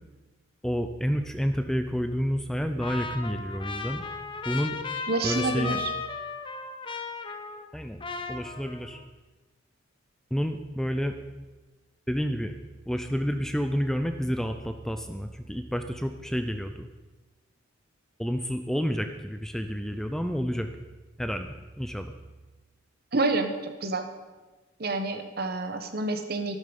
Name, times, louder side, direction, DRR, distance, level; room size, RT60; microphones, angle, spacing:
voice 1, 0.6-4.0 4.5-4.8 5.2-5.8 7.7-8.0 8.3-9.0 10.3-11.2 12.1-12.5 12.9-16.9 18.2-20.7 21.2-22.1, equal, ahead, 7 dB, 0.5 m, -29 dB
Trumpet, 2.8-7.7 8.0-9.0, left 4 dB, 25° left, 0.9 m, -35 dB
voice 2, 5.1-5.9 23.1-24.1 24.8-26.6, right 3 dB, 50° right, 7 dB, 1.3 m, -28 dB
13.0 x 12.0 x 5.3 m, 1.2 s
head